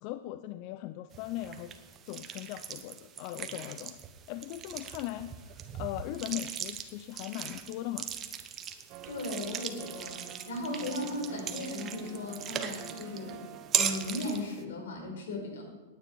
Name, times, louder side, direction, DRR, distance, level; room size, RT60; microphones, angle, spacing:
voice 1, 0.0-1.7 2.1-4.0 4.3-8.1, left 14 dB, 45° left, 11 dB, 0.5 m, -39 dB
sound 1, 1.1-14.6, right 8 dB, 25° right, 1.1 m, -39 dB
sound 2, 8.9-14.2, right 11 dB, 40° right, 0.8 m, -48 dB
voice 2, 9.0-13.4 13.7-15.6, left 2 dB, 75° left, 1 dB, 4.9 m, -37 dB
17.5 x 9.5 x 4.7 m, 1.3 s
hypercardioid pair, 130°, 0 cm